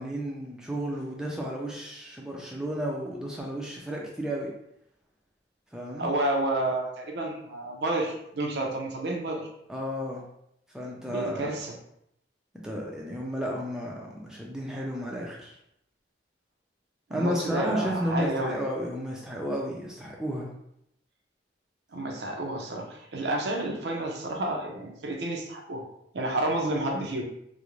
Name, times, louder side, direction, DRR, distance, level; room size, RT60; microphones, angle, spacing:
voice 1, 0.0-4.5 5.7-6.1 9.7-10.2 10.7-11.5 12.6-15.5 17.1-20.5, equal, 5° right, -3 dB, 0.3 m, -32 dB
voice 2, 6.0-9.5 11.1-11.7 17.1-18.6 21.9-25.8 26.1-27.2, right 1 dB, 65° right, 1 dB, 0.5 m, -30 dB
2.4 x 2.0 x 3.0 m, 0.76 s
head